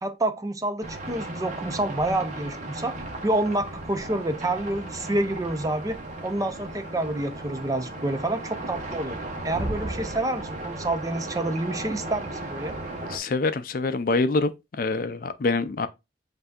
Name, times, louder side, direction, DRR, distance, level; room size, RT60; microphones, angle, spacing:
voice 1, 0.0-2.9 3.2-6.0 6.2-9.2 9.4-12.8, right 1 dB, 20° right, 0.5 m, -28 dB
sound 1, 0.8-13.2, right 1 dB, 45° right, 1.1 m, -35 dB
voice 2, 13.1-14.5 14.8-15.9, left 3 dB, 50° left, 0.4 m, -25 dB
7.9 x 2.7 x 2.4 m
head